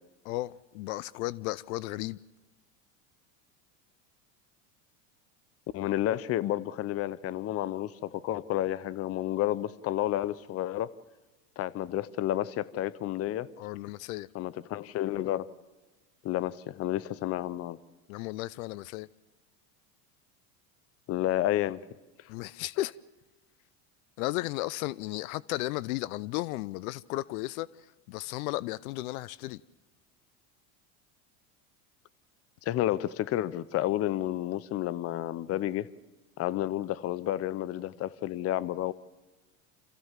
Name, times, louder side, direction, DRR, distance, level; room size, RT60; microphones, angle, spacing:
voice 1, 0.2-2.2 13.6-14.3 18.1-19.1 22.3-23.0 24.2-29.6, left 18 dB, 75° left, 0.6 m, -34 dB
voice 2, 5.7-10.9 11.6-13.5 14.3-15.5 16.2-17.8 21.1-21.8 32.7-35.9 36.4-38.9, left 13 dB, 35° left, 0.7 m, -30 dB
27.0 x 15.0 x 7.3 m
supercardioid pair, 115°, 43 cm